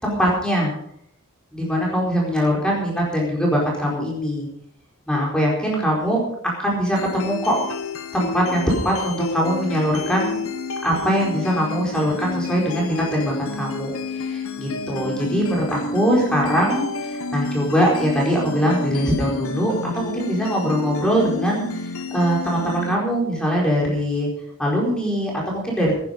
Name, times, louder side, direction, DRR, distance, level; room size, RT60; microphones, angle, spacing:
voice 1, 0.0-0.7 1.5-4.5 5.1-7.6 8.1-10.4 10.8-24.3 24.6-26.0, equal, 5° left, -3 dB, 4.4 m, -22 dB
sound 1, 7.0-23.0, left 3 dB, 80° left, 1.4 m, -30 dB
18.5 x 10.5 x 5.3 m, 0.69 s
head